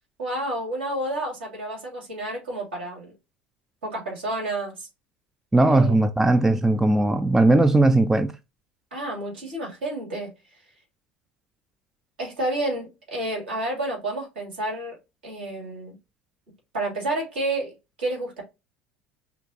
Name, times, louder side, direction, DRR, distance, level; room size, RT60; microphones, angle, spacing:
voice 1, 0.2-3.1 3.8-4.9 5.6-6.0 8.9-10.3 12.2-14.9 15.2-15.9 16.7-18.4, right 1 dB, 70° right, 2.6 m, -30 dB
voice 2, 5.5-8.3, right 2 dB, 5° right, 0.3 m, -18 dB
5.7 x 2.4 x 2.9 m
figure-of-eight pair, 70°, 6 cm